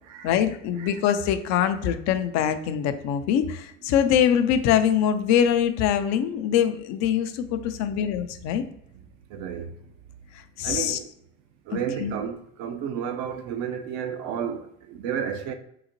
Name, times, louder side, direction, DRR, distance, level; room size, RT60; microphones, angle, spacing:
voice 1, 0.2-8.6 10.6-11.0 11.7-12.2, left 9 dB, 50° left, 0.5 m, -23 dB
voice 2, 9.3-9.7 10.6-11.1 11.7-15.5, right 8 dB, 55° right, 0.6 m, -32 dB
3.8 x 2.0 x 3.0 m
hypercardioid pair, 80°, 36 cm